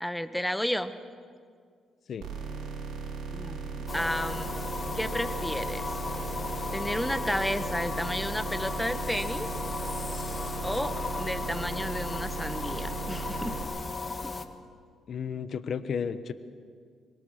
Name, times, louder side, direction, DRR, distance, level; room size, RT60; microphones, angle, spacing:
voice 1, 0.0-0.9 3.3-4.5 4.9-5.9 6.7-9.5 10.6-10.9 11.2-13.5 14.2-14.3, equal, 5° left, 11 dB, 1.2 m, -32 dB
sound 1, 2.2-13.6, right 5 dB, 80° right, 5.2 m, -37 dB
sound 2, 3.9-14.5, left 3 dB, 30° left, 1.5 m, -35 dB
voice 2, 15.1-16.3, left 7 dB, 55° left, 12 dB, 1.1 m, -33 dB
25.0 x 21.0 x 6.6 m, 2.1 s
cardioid pair, 90°, 0 cm